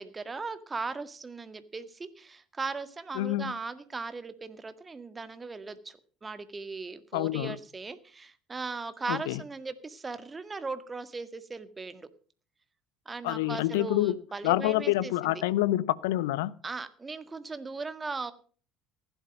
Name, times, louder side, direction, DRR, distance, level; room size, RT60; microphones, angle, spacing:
voice 1, 0.0-12.1 13.1-15.4 16.6-18.3, right 4 dB, 25° right, 1.8 m, -38 dB
voice 2, 3.2-3.5 7.1-7.6 9.1-9.4 13.2-14.2 14.4-16.5, left 16 dB, 70° left, 0.6 m, -27 dB
15.5 x 11.5 x 5.2 m
figure-of-eight pair, 60°, 0 cm